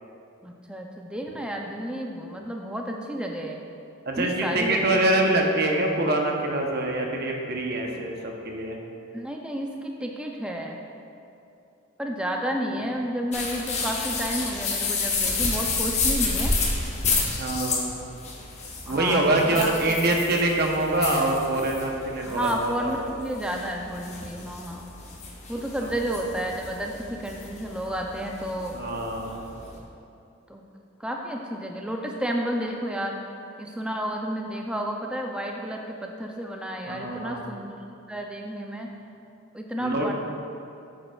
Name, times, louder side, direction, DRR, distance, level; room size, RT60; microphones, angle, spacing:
voice 1, 0.4-3.6 4.2-5.0 9.1-10.8 12.0-16.5 18.9-19.7 22.3-24.8 25.5-28.8 30.5-30.7 31.0-33.2 33.6-37.7 38.1-38.9 39.5-40.1, equal, 5° right, 1 dB, 0.4 m, -31 dB
voice 2, 4.1-8.8 17.4-17.9 18.9-23.1 28.7-29.5 36.9-37.5 39.8-40.1, right 1 dB, 50° right, 1 dB, 0.8 m, -25 dB
sound 1, 13.3-29.8, left 3 dB, 30° left, 0.8 m, -31 dB
8.6 x 7.5 x 2.3 m, 2.7 s
head